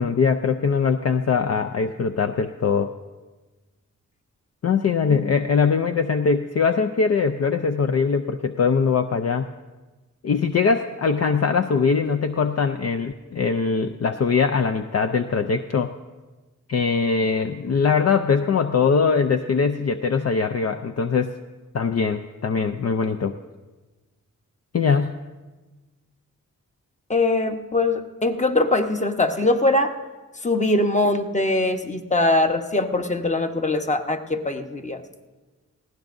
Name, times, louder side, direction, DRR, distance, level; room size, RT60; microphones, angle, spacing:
voice 1, 0.0-2.9 4.6-9.5 10.2-15.9 16.7-21.3 21.7-23.4 24.7-25.1, left 5 dB, 50° left, 8 dB, 0.5 m, -22 dB
voice 2, 27.1-29.9 30.4-35.0, left 2 dB, 20° left, 6 dB, 1.0 m, -22 dB
19.0 x 16.0 x 2.6 m, 1.2 s
cardioid pair, 55°, 33 cm